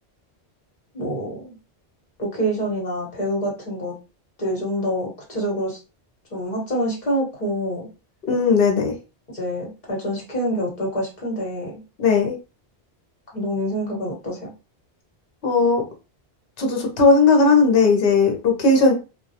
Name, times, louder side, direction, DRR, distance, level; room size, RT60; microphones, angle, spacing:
voice 1, 0.9-1.5 2.2-3.9 4.4-5.8 6.3-7.9 9.3-11.7 13.3-14.5, equal, 45° left, 1.1 m, -26 dB
voice 2, 8.3-8.9 12.0-12.3 15.4-15.8 16.6-18.9, left 4 dB, 60° left, 0.9 m, -17 dB
2.2 x 2.2 x 2.7 m
omnidirectional pair, 1.1 m